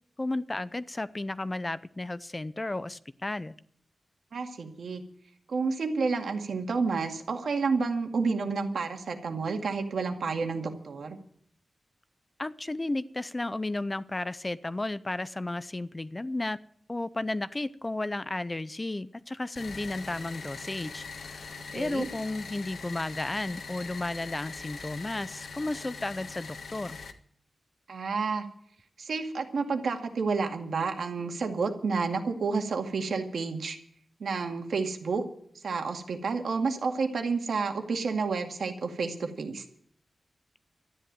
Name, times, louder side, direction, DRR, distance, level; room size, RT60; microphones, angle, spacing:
voice 1, 0.2-3.5 12.4-16.6 16.9-21.0 21.3-21.4 21.7-27.0, left 2 dB, 20° left, 15 dB, 0.5 m, -33 dB
voice 2, 4.3-5.0 5.5-11.2 21.7-22.1 27.9-28.5 29.0-33.8 34.2-35.2 35.6-39.6, right 4 dB, 80° right, 4 dB, 2.2 m, -30 dB
sound 1, 19.6-27.1, left 4 dB, 75° left, 1.5 m, -42 dB
13.0 x 10.5 x 9.1 m, 0.64 s
wide cardioid pair, 145°, 0 cm